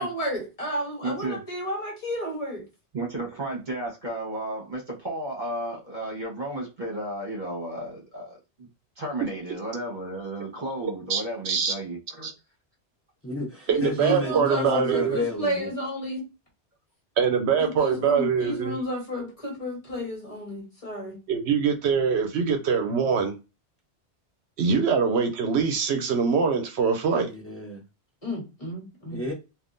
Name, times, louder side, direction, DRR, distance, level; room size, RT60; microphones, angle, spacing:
voice 1, 0.0-2.7 13.7-16.3 17.6-21.2 28.2-29.2, equal, 30° left, 1.2 m, -32 dB
voice 2, 1.0-1.4 2.9-8.7 9.0-12.3, right 1 dB, 45° right, 1.1 m, -33 dB
voice 3, 11.1-11.7 12.2-12.3 13.7-15.2 17.2-18.8 21.3-23.3 24.6-27.3, right 6 dB, 75° right, 0.8 m, -23 dB
voice 4, 13.2-15.7 27.2-27.8 29.1-29.3, left 1 dB, 15° left, 0.9 m, -31 dB
3.4 x 2.4 x 2.5 m
omnidirectional pair, 1.2 m